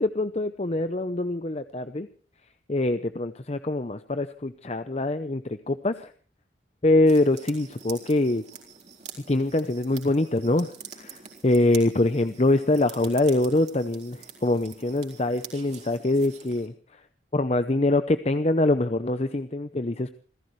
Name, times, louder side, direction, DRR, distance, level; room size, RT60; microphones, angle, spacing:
voice 1, 0.0-2.1 2.7-6.1 6.8-8.4 9.3-17.0 17.3-20.1, left 2 dB, 35° left, 11 dB, 0.7 m, -24 dB
sound 1, 7.1-16.7, right 6 dB, 35° right, 4.1 m, -46 dB
27.5 x 16.0 x 3.2 m, 0.38 s
head